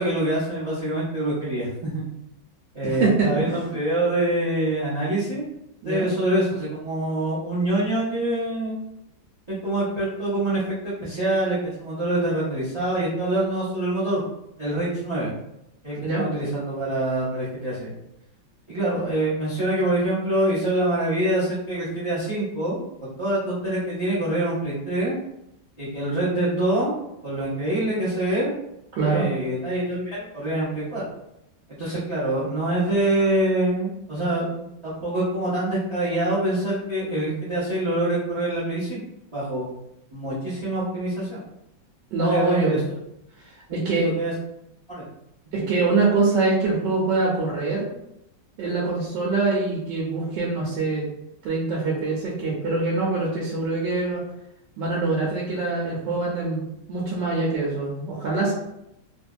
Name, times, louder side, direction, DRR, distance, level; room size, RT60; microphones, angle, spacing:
voice 1, 0.0-2.0 2.7-5.4 5.8-8.8 9.5-14.2 14.6-15.3 15.8-17.9 18.7-25.2 25.8-26.9 27.2-28.5 29.0-31.0 31.7-39.0 39.3-39.7 40.1-41.4 42.2-42.8 43.7-44.3 44.9-45.0, right 1 dB, 35° right, -9 dB, 0.5 m, -25 dB
voice 2, 2.8-3.6 5.8-6.1 16.0-16.2 28.9-29.3 42.1-42.8 43.7-44.1 45.5-47.8 48.6-51.0 51.4-54.2 54.8-58.5, right 3 dB, 75° right, -3 dB, 1.3 m, -24 dB
2.9 x 2.6 x 2.3 m, 0.82 s
omnidirectional pair, 2.1 m